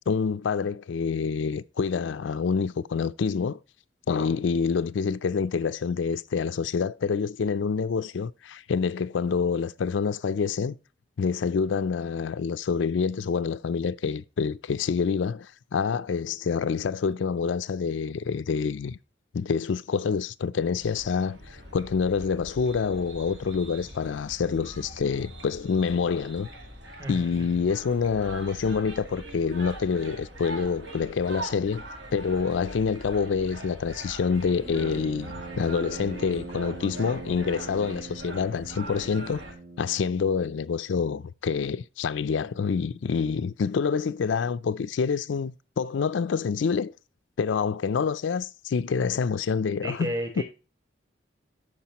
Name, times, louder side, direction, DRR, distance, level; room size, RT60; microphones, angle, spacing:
voice 1, 0.1-3.6 4.1-10.8 11.2-19.0 19.3-21.4 21.7-26.5 27.1-31.9 32.1-39.4 39.8-46.9 47.4-50.4, left 5 dB, 90° left, 0.4 m, -27 dB
demo berlin, 20.8-39.5, right 1 dB, 75° right, 2.3 m, -42 dB
voice 2, 27.0-27.6 49.8-50.4, equal, 25° right, 3.6 m, -33 dB
Brass instrument, 34.6-40.5, right 3 dB, 60° right, 1.1 m, -42 dB
12.5 x 5.0 x 2.9 m
head